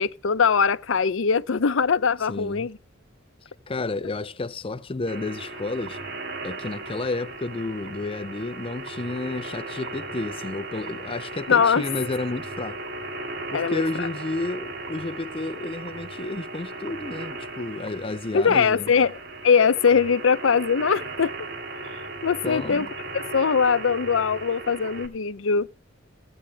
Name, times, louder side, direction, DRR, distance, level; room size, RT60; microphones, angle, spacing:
voice 1, 0.0-2.8 11.5-11.8 13.5-14.1 18.3-21.3 22.2-22.9 23.1-25.7, left 6 dB, 75° left, 0.6 m, -21 dB
voice 2, 2.3-2.7 3.7-6.0 6.4-12.8 13.5-18.9 22.4-22.9, left 2 dB, 30° left, 0.5 m, -31 dB
sound 1, 5.1-25.1, right 2 dB, 55° right, 2.3 m, -37 dB
16.5 x 8.8 x 3.4 m
head